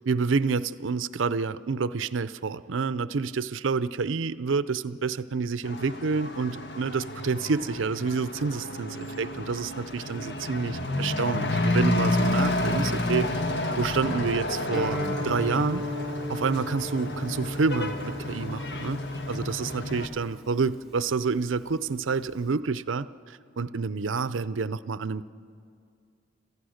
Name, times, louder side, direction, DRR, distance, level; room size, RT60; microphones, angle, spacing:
voice 1, 0.1-13.3 13.8-15.8 16.3-19.0 19.3-25.3, right 4 dB, 80° right, 15 dB, 0.6 m, -28 dB
Truck / Accelerating revving vroom, 5.6-20.1, left 2 dB, 60° left, 1.4 m, -30 dB
Guitar, 14.7-22.5, left 1 dB, ahead, 2.0 m, -38 dB
27.5 x 15.0 x 6.5 m, 2.3 s
head